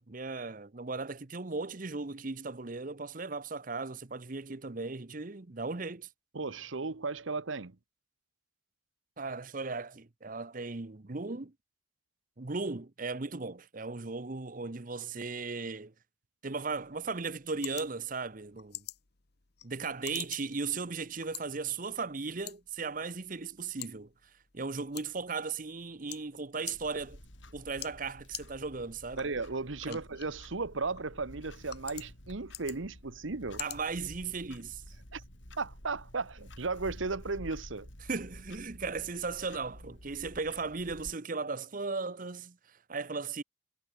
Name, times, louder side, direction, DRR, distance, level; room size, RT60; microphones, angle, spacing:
voice 1, 0.0-6.1 9.2-11.5 12.4-15.9 16.4-18.9 19.6-24.1 24.5-27.2 27.5-29.2 29.9-30.0 33.6-34.8 38.0-43.4, right 4 dB, 45° right, 0.9 m, -37 dB
voice 2, 6.3-7.8 29.2-33.6 35.1-35.2 35.6-37.9, right 3 dB, 75° right, 1.1 m, -35 dB
sound 1, 16.7-34.7, left 14 dB, 55° left, 1.3 m, -49 dB
Clock, 26.7-41.2, left 1 dB, 70° left, 7.4 m, -51 dB
head